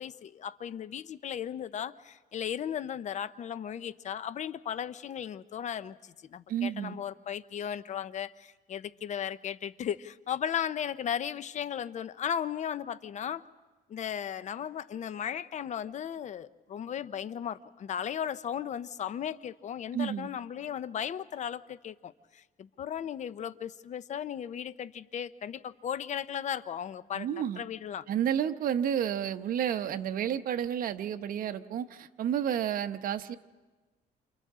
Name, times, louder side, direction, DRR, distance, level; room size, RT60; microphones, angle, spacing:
voice 1, 0.0-13.4 13.9-27.3 27.6-28.1, left 9 dB, 45° left, 15 dB, 0.7 m, -36 dB
voice 2, 6.5-7.0 19.9-20.3 27.1-27.6 28.1-33.4, right 9 dB, 55° right, 9 dB, 1.0 m, -31 dB
29.0 x 28.0 x 3.7 m, 1.3 s
cardioid pair, 110°, 17 cm